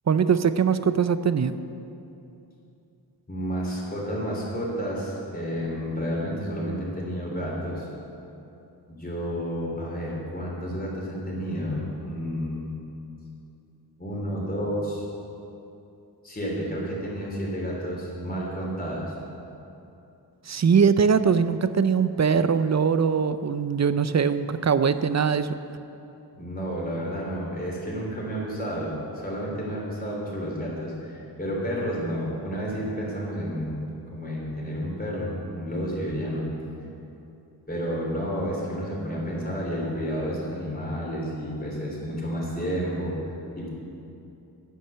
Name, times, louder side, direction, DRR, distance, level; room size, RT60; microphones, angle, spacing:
voice 1, 0.1-1.6 20.5-25.5, right 6 dB, 40° right, 12 dB, 0.5 m, -22 dB
voice 2, 3.3-7.9 8.9-12.7 14.0-15.1 16.2-19.1 26.3-33.8 34.1-36.5 37.7-43.7, equal, 20° left, -4 dB, 3.3 m, -31 dB
10.0 x 9.5 x 6.8 m, 2.8 s
wide cardioid pair, 95°, 42 cm